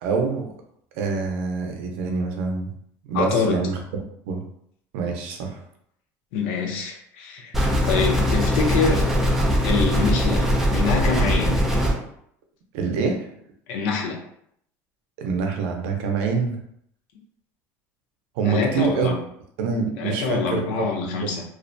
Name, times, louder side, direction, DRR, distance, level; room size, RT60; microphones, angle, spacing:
voice 1, 0.0-0.5 1.0-2.7 3.1-3.8 4.3-4.4 4.9-5.6 12.7-13.3 15.2-16.6 18.4-19.1 19.6-20.7 21.0-21.3, right 5 dB, 70° right, 3 dB, 0.5 m, -25 dB
voice 2, 3.1-3.6 6.3-9.0 9.6-11.6 13.7-14.2 18.4-19.2 20.0-21.4, left 5 dB, 70° left, 1 dB, 0.6 m, -25 dB
sound 1, 7.5-11.9, equal, 5° right, 0.3 m, -21 dB
2.4 x 2.1 x 2.5 m, 0.70 s
cardioid pair, 180°, 7 cm